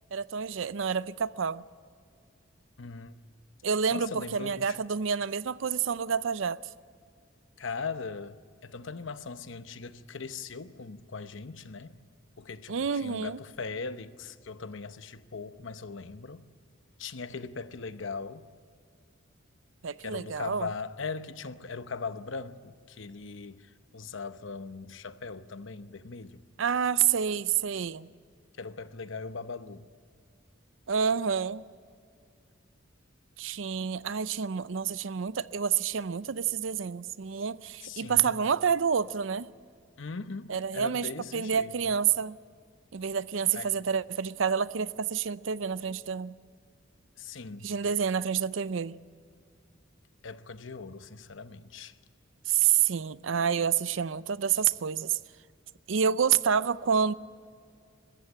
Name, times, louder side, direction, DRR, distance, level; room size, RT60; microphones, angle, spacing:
voice 1, 0.1-1.6 3.6-6.6 12.7-13.4 19.8-20.7 26.6-28.1 30.9-31.6 33.4-39.5 40.5-42.4 42.9-46.4 47.6-49.0 52.5-55.2 55.9-57.1, right 7 dB, 70° right, 0.5 m, -28 dB
voice 2, 2.8-3.1 3.9-4.8 7.6-12.0 12.4-16.5 17.0-18.5 20.0-26.5 28.6-29.9 37.8-38.4 40.0-42.0 43.5-43.7 47.2-47.7 50.2-52.0, left 4 dB, 65° left, 0.9 m, -40 dB
22.5 x 14.5 x 8.8 m
head